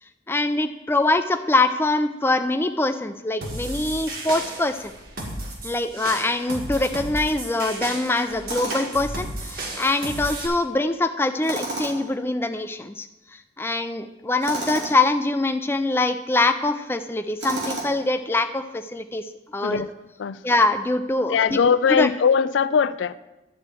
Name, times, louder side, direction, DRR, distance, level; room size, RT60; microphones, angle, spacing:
voice 1, 0.3-4.9 5.6-13.1 13.6-19.2 19.5-19.8 20.4-21.6 21.9-22.1, left 2 dB, 10° left, 8 dB, 0.4 m, -23 dB
sound 1, 3.4-10.5, right 1 dB, 50° right, 1.9 m, -33 dB
Tools, 8.5-9.0 11.4-12.2 14.4-15.0 17.4-18.1, right 2 dB, 80° right, 2.5 m, -31 dB
voice 2, 21.3-23.2, left 6 dB, 85° left, 15 dB, 0.4 m, -20 dB
11.5 x 4.4 x 7.6 m, 1.0 s
head